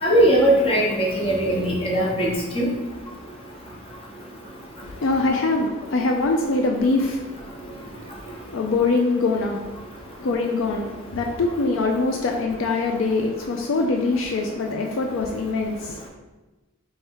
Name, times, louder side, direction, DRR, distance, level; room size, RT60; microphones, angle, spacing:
voice 1, 0.0-2.7, right 1 dB, 25° left, -3 dB, 0.9 m, -20 dB
voice 2, 4.8-7.5 7.9-8.0 8.4-9.7 10.2-16.1, left 3 dB, 65° left, 2 dB, 0.4 m, -23 dB
3.3 x 3.2 x 4.5 m, 1.2 s
head